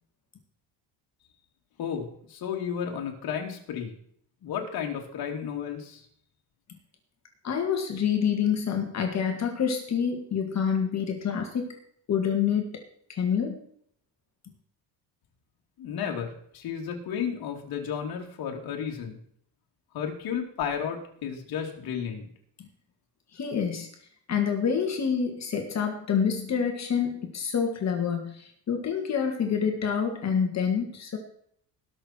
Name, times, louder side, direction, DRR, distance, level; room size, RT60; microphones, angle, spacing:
voice 1, 1.8-3.9 4.4-6.0 15.8-19.2 19.9-22.3, left 7 dB, 55° left, 1 dB, 2.8 m, -33 dB
voice 2, 7.4-11.8 12.1-12.6 13.1-13.6 22.6-22.7 23.3-23.9 24.3-31.2, left 7 dB, 40° left, 3 dB, 2.0 m, -27 dB
19.5 x 6.5 x 4.5 m, 0.65 s
cardioid pair, 140°, 43 cm